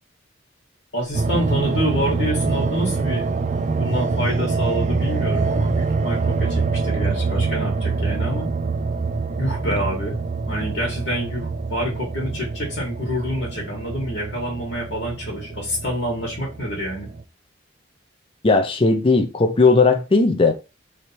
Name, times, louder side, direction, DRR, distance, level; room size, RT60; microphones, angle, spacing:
voice 1, 0.9-3.3 3.8-8.5 9.4-10.2 10.5-17.1, equal, 70° left, 1.6 m, -27 dB
sound 1, 1.1-17.2, right 4 dB, 40° right, 0.3 m, -25 dB
voice 2, 18.4-20.5, left 3 dB, 30° left, 0.5 m, -17 dB
3.1 x 2.7 x 4.3 m
head